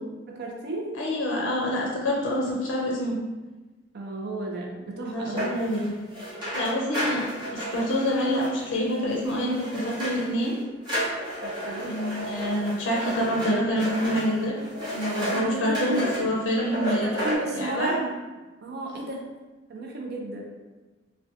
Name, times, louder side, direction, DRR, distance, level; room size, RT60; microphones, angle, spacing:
voice 1, 0.3-1.0 3.9-5.5 11.4-12.0 15.1-16.1 16.7-18.1 18.6-19.3 19.7-20.6, right 2 dB, 60° right, 0 dB, 0.4 m, -33 dB
voice 2, 0.9-3.2 5.0-5.8 6.5-7.3 7.5-10.5 11.8-14.5 14.9-17.1 17.5-17.9, equal, 85° left, -3 dB, 0.4 m, -27 dB
sound 1, 5.4-10.5 10.8-15.4 15.7-16.2 16.6-17.4, equal, 25° right, 0.7 m, -32 dB
2.5 x 2.1 x 2.5 m, 1.2 s
head